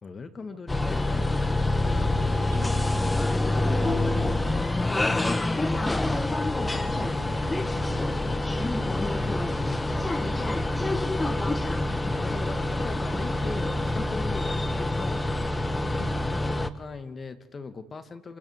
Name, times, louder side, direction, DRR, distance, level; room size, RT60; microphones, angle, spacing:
voice 1, 0.0-2.9 12.1-15.3 16.3-18.4, left 4 dB, 40° left, 10 dB, 2.4 m, -39 dB
sound 1, 0.7-16.7, left 2 dB, 15° left, 1.6 m, -26 dB
voice 2, 3.5-4.7 6.9-8.4 16.0-16.2, right 9 dB, 90° right, 9 dB, 2.0 m, -46 dB
28.0 x 21.5 x 8.3 m, 1.3 s
hypercardioid pair, 65°, 0 cm